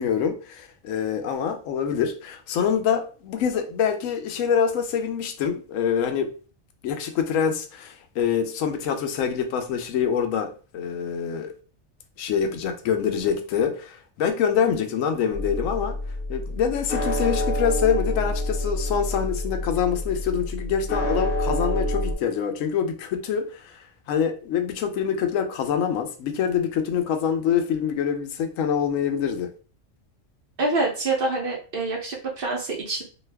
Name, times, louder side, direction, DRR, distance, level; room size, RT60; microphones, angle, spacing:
voice 1, 0.0-6.3 6.8-11.5 12.2-15.9 16.3-29.5, left 7 dB, 90° left, 1.0 m, -25 dB
sound 1, 15.3-22.1, left 1 dB, 65° left, 0.8 m, -27 dB
voice 2, 30.6-33.0, right 2 dB, 50° right, 0.8 m, -26 dB
2.6 x 2.3 x 3.2 m
omnidirectional pair, 1.3 m